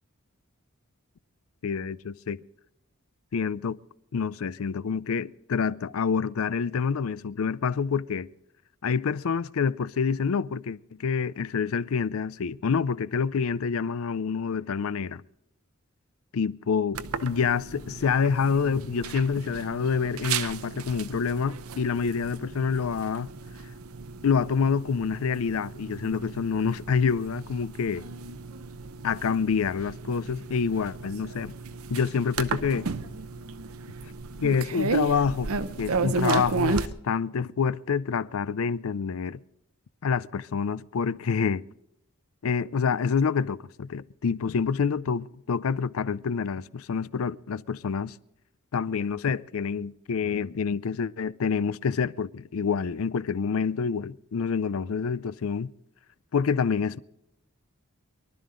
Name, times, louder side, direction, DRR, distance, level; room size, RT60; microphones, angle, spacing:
voice 1, 1.6-2.4 3.3-3.8 4.1-8.3 8.8-15.2 16.3-23.3 24.2-28.0 29.0-31.5 31.9-32.9 34.4-35.5 35.8-39.4 40.0-41.6 42.4-48.2 48.7-55.7 56.3-57.0, left 6 dB, 75° left, 0.5 m, -27 dB
sound 1, 16.9-36.9, right 4 dB, 85° right, 0.8 m, -34 dB
23.5 x 12.0 x 3.8 m
head